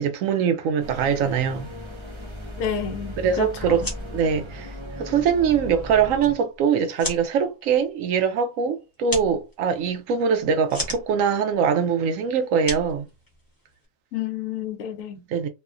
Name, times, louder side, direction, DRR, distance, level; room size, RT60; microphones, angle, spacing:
voice 1, 0.0-1.7 3.2-13.1 15.3-15.5, right 7 dB, 75° right, 1.0 m, -23 dB
sound 1, 0.8-6.4, equal, 40° right, 0.4 m, -37 dB
voice 2, 2.6-3.9 14.1-15.2, left 8 dB, 75° left, 1.0 m, -30 dB
sound 2, 3.8-13.9, left 1 dB, 20° left, 0.8 m, -38 dB
3.1 x 2.2 x 2.4 m
omnidirectional pair, 1.4 m